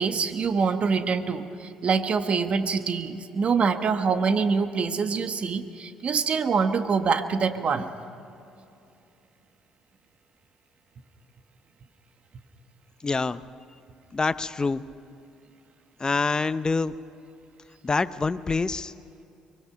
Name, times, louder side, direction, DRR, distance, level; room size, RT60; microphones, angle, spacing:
voice 1, 0.0-7.9, right 5 dB, 50° right, 8 dB, 1.5 m, -25 dB
voice 2, 13.0-13.4 14.1-14.9 16.0-17.0 17.8-18.9, left 4 dB, 30° left, 14 dB, 0.8 m, -26 dB
24.0 x 23.0 x 5.9 m, 2.7 s
hypercardioid pair, 55°, 3 cm